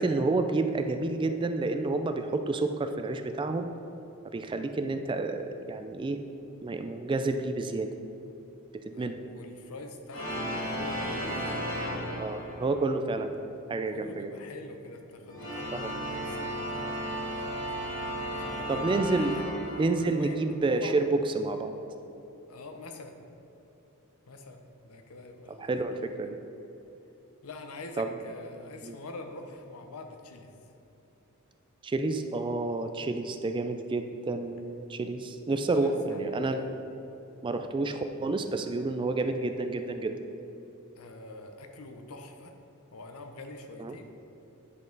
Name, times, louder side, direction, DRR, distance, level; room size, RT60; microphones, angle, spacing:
voice 1, 0.0-3.7 4.3-6.2 6.6-7.9 8.8-9.2 12.2-13.4 13.7-14.3 15.8-15.9 18.7-19.4 19.8-21.7 25.6-26.4 28.0-28.1 28.8-29.0 31.8-36.6 37.4-40.1 43.8-44.0, right 3 dB, 20° right, 7 dB, 0.3 m, -29 dB
voice 2, 8.9-11.7 13.9-19.5 20.0-21.0 22.5-23.2 24.3-25.7 26.2-26.3 27.4-30.5 35.7-36.7 41.0-42.5 42.9-44.1, left 2 dB, 75° left, 5 dB, 0.8 m, -45 dB
sound 1, 10.1-12.9 15.2-20.4, equal, 60° left, 1.3 m, -34 dB
9.6 x 5.3 x 3.9 m, 3.0 s
head